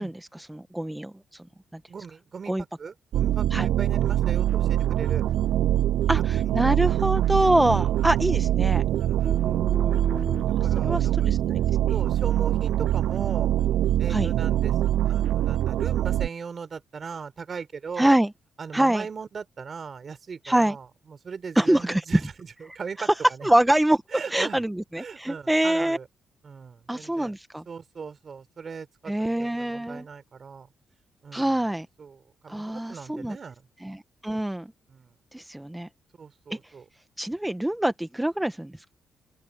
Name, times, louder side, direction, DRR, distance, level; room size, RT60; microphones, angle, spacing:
voice 1, 0.0-1.4 2.5-2.6 3.5-3.7 6.1-8.8 9.2-10.4 10.9-11.6 14.1-14.3 18.0-18.3 18.7-19.0 20.4-20.8 21.5-22.0 23.4-24.0 24.3-26.0 26.9-27.6 29.1-30.0 31.3-31.9 32.5-33.4 33.8-34.7 35.3-35.9 36.5-36.6 37.2-38.7, right 1 dB, 10° right, 1.4 m, -25 dB
voice 2, 1.9-5.2 7.7-8.1 9.0-9.6 10.2-11.3 11.9-13.5 14.0-14.8 15.1-18.2 18.6-23.5 24.1-24.6 25.0-26.1 26.4-27.3 27.7-30.7 31.2-31.7 32.0-33.6 34.9-35.2 36.2-36.8, right 5 dB, 50° right, 4.0 m, -39 dB
sound 1, 3.1-16.3, right 12 dB, 75° right, 0.3 m, -23 dB
open air
supercardioid pair, 50°, 0 cm